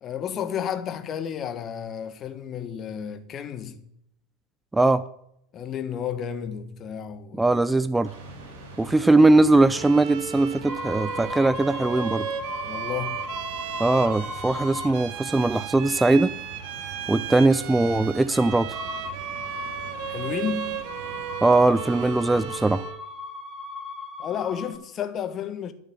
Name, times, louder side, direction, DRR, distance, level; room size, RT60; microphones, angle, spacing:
voice 1, 0.0-3.8 5.5-7.4 12.6-13.3 20.0-20.8 24.2-25.7, left 8 dB, 35° left, 1.3 m, -32 dB
voice 2, 4.7-5.0 7.4-8.1 8.8-12.3 13.8-16.3 17.1-18.8 21.4-22.8, right 2 dB, 10° right, 0.5 m, -20 dB
sound 1, 8.0-22.8, right 4 dB, 70° right, 4.6 m, -44 dB
Bowed string instrument, 9.7-23.1, right 10 dB, 55° right, 1.2 m, -35 dB
sound 2, 10.6-15.0 18.7-24.8, left 3 dB, 10° left, 2.5 m, -37 dB
12.5 x 6.8 x 7.4 m
figure-of-eight pair, 80°, 0 cm